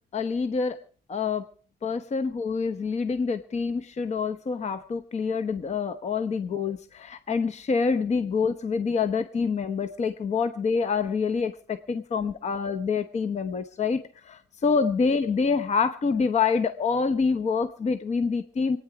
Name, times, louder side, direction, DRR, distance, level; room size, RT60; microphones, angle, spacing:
voice 1, 0.1-0.8 1.1-1.5 1.8-18.8, left 5 dB, 40° left, 10 dB, 0.9 m, -26 dB
26.0 x 9.5 x 4.8 m, 0.41 s
cardioid pair, 130°, 17 cm